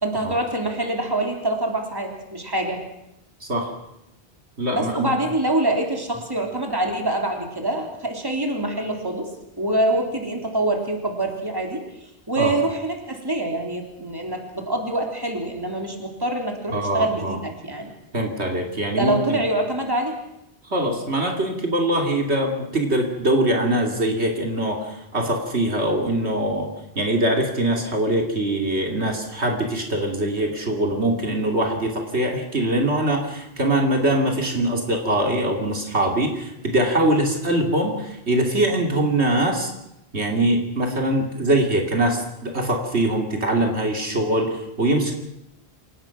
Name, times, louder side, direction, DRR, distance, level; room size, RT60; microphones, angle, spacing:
voice 1, 0.0-2.8 4.7-9.3 9.6-11.8 12.3-17.9 18.9-20.2, right 1 dB, 20° right, 2 dB, 3.4 m, -25 dB
voice 2, 4.6-5.1 12.4-12.5 16.7-17.4 18.1-19.4 20.6-26.7 26.9-39.7 40.1-45.1, right 1 dB, 80° right, 2 dB, 3.2 m, -23 dB
27.5 x 17.5 x 6.0 m, 0.84 s
omnidirectional pair, 1.1 m